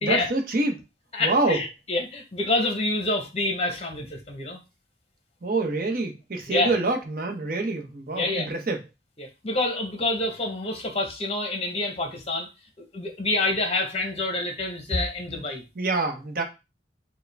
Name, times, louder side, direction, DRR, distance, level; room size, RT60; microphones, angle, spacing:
voice 1, 0.0-0.8 1.2-1.6 5.4-8.8 15.8-16.4, right 2 dB, 55° right, 4 dB, 0.8 m, -26 dB
voice 2, 1.1-4.6 6.5-6.7 8.1-8.5 9.2-12.5 12.8-15.6, left 2 dB, 35° left, 4 dB, 0.9 m, -27 dB
4.7 x 2.2 x 3.3 m, 0.26 s
head